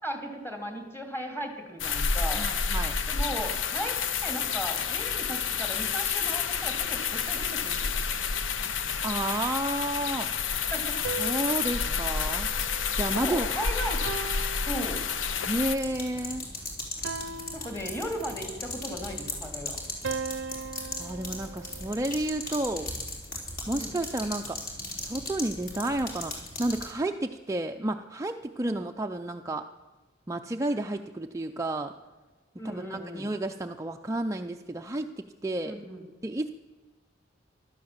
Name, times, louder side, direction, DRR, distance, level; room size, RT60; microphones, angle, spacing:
voice 1, 0.0-2.5 3.1-3.9 4.2-7.9 10.7-11.0 13.2-14.1 14.6-15.0 17.5-19.8 23.8-23.9 28.6-28.8 32.6-33.2 35.7-36.0, equal, 15° left, 4 dB, 2.3 m, -36 dB
sound 1, 1.8-15.7, left 6 dB, 85° left, 0.8 m, -29 dB
voice 2, 2.4-3.0 9.0-10.3 11.2-12.5 12.9-13.5 15.5-16.5 21.0-23.0 23.7-24.6 25.0-29.7 30.3-31.9 32.6-35.8 36.2-36.5, right 1 dB, 15° right, 4 dB, 0.4 m, -31 dB
sound 2, 11.0-13.5 14.0-15.5 17.0-18.5 20.0-22.4, right 5 dB, 70° right, 0.6 m, -39 dB
sound 3, 15.8-26.9, left 2 dB, 50° left, 3.8 m, -38 dB
15.5 x 12.5 x 7.2 m, 1.3 s
head